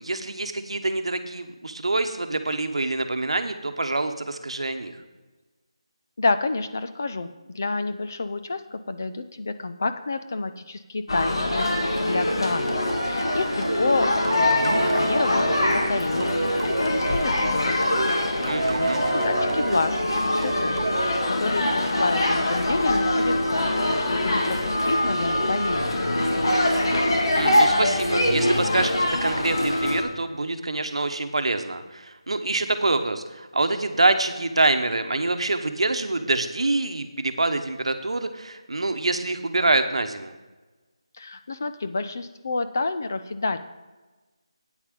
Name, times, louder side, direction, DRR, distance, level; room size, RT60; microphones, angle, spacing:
voice 1, 0.0-4.9 18.5-19.0 27.3-40.3, right 2 dB, 80° right, 8 dB, 1.0 m, -26 dB
voice 2, 6.2-12.7 13.0-16.3 16.6-18.0 18.4-20.9 21.3-23.7 24.1-26.0 41.1-43.6, left 3 dB, 30° left, 10 dB, 0.4 m, -29 dB
sound 1, 11.1-30.0, left 1 dB, 55° left, 1.6 m, -24 dB
sound 2, 12.7-21.9, right 2 dB, 55° right, 0.8 m, -30 dB
9.0 x 8.6 x 5.3 m, 1.2 s
figure-of-eight pair, 180°, 3 cm